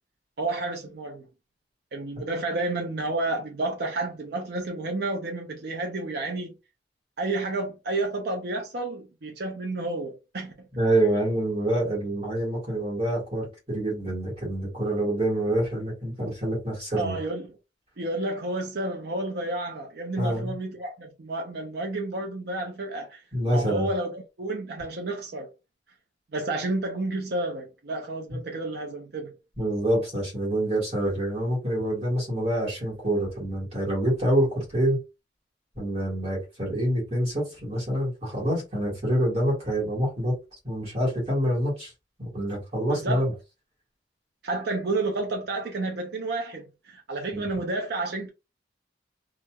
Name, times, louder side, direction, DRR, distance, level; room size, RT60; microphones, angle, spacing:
voice 1, 0.4-1.3 1.9-6.5 7.2-10.7 17.0-17.5 18.0-23.2 23.5-25.5 26.3-29.4 42.9-43.2 44.4-48.3, right 2 dB, 60° right, 0.5 m, -30 dB
voice 2, 10.8-17.2 20.2-20.5 23.3-23.9 29.6-35.0 35.7-40.3 40.6-41.9 42.2-43.3 47.3-47.5, right 1 dB, 35° right, 1.3 m, -26 dB
2.9 x 2.5 x 2.2 m
head